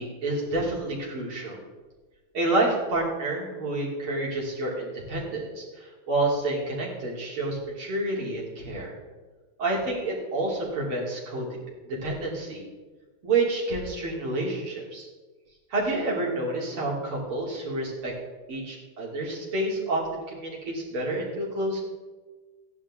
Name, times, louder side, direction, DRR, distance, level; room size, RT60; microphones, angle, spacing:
voice 1, 0.0-1.6 2.3-8.9 9.6-11.5 11.8-12.6 13.2-15.1 15.7-18.1 18.5-21.8, right 2 dB, 80° right, -4 dB, 3.6 m, -29 dB
15.5 x 10.5 x 3.7 m, 1.3 s
omnidirectional pair, 2.3 m